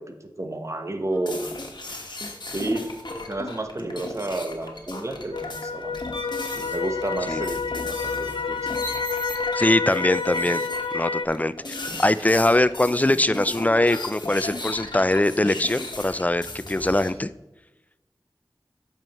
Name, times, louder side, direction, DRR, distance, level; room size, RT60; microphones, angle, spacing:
voice 1, 0.0-1.5 2.5-2.9 3.3-6.1 6.5-8.7 11.9-12.0, right 2 dB, 40° right, 6 dB, 1.0 m, -31 dB
sound 1, 1.1-11.1 11.3-17.1, left 2 dB, 65° left, 1.3 m, -36 dB
sound 2, 5.3-11.3, left 5 dB, 85° left, 0.6 m, -29 dB
voice 2, 9.5-10.6 10.9-17.3, left 1 dB, 20° left, 15 dB, 0.3 m, -22 dB
8.9 x 6.9 x 3.0 m, 1.0 s
wide cardioid pair, 50°, 8 cm